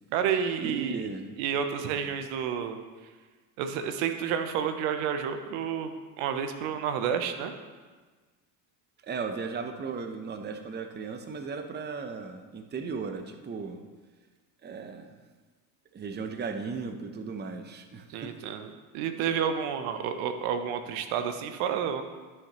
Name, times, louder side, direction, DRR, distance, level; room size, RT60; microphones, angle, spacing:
voice 1, 0.1-1.1 1.4-2.8 3.6-7.5 18.1-22.0, right 8 dB, 70° right, 8 dB, 0.9 m, -30 dB
voice 2, 0.6-1.3 2.1-2.2 9.0-13.8 14.6-15.1 15.9-18.3, right 5 dB, 20° right, 6 dB, 0.7 m, -36 dB
12.5 x 5.9 x 3.0 m, 1.4 s
supercardioid pair, 85°, 48 cm